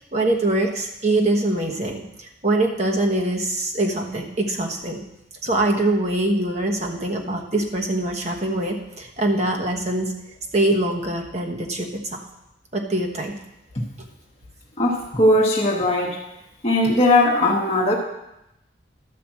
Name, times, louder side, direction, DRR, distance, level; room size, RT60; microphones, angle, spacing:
voice 1, 0.1-5.0 5.4-10.1 10.5-12.3 12.7-13.4, right 1 dB, 40° right, 2 dB, 1.3 m, -23 dB
voice 2, 14.8-16.2 16.6-17.9, left 1 dB, 35° left, -2 dB, 1.1 m, -19 dB
11.5 x 5.1 x 7.3 m, 0.87 s
head